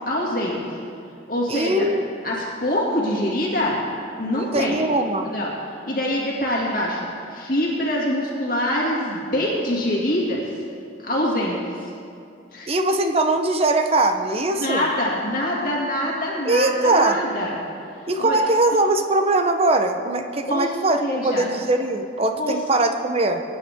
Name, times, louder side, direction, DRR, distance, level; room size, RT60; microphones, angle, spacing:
voice 1, 0.1-0.6 1.3-1.9 2.2-3.8 4.2-4.8 5.2-5.5 5.8-10.4 11.0-11.9 12.5-12.7 14.6-17.6 18.2-18.4 20.5-20.7 21.0-21.5 22.4-22.6, left 1 dB, 50° left, -4 dB, 2.2 m, -24 dB
voice 2, 1.5-2.0 4.3-5.3 12.7-14.8 16.4-17.2 18.1-23.4, right 2 dB, 30° right, 6 dB, 0.8 m, -21 dB
23.0 x 9.3 x 3.6 m, 2.5 s
head